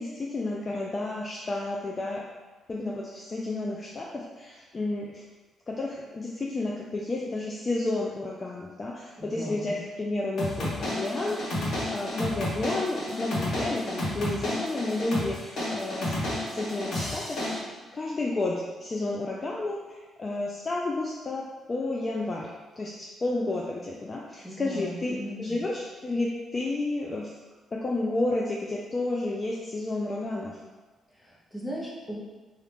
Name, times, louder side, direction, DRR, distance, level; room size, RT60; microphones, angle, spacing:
voice 1, 0.0-2.2 2.7-5.2 5.7-16.2 16.5-17.7 17.9-27.3 27.7-30.6, left 2 dB, 35° left, -3 dB, 0.4 m, -31 dB
voice 2, 9.2-9.8 24.4-25.6 31.2-32.2, equal, 10° left, -4 dB, 0.8 m, -38 dB
sound 1, 10.4-17.6, left 1 dB, 60° left, 1.1 m, -31 dB
2.8 x 2.4 x 3.4 m, 1.3 s
cardioid pair, 90°, 0 cm